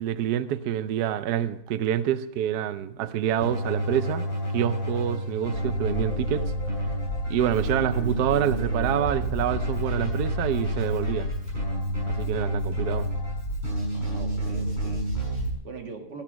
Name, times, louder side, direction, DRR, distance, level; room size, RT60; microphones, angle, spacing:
voice 1, 0.0-4.3 4.5-6.5 7.3-11.3 12.1-13.1, right 10 dB, 80° right, 0.9 m, -27 dB
Keyboard (musical), 3.4-15.5, right 1 dB, 20° right, 6.3 m, -30 dB
sound 1, 5.5-15.5, left 1 dB, 75° left, 2.8 m, -33 dB
voice 2, 13.9-16.2, right 4 dB, 50° right, 2.2 m, -42 dB
13.5 x 10.5 x 5.1 m
omnidirectional pair, 2.4 m